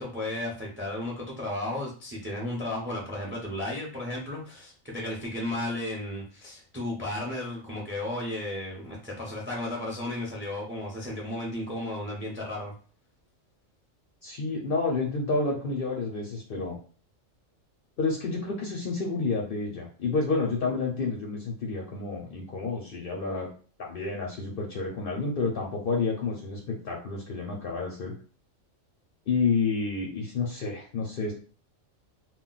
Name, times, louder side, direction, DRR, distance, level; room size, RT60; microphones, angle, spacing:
voice 1, 0.0-12.7, left 1 dB, 15° right, -2 dB, 0.5 m, -34 dB
voice 2, 14.2-16.8 18.0-23.5 23.8-28.1 29.3-31.3, left 4 dB, 55° left, -1 dB, 0.6 m, -29 dB
2.2 x 2.2 x 3.8 m, 0.40 s
omnidirectional pair, 1.4 m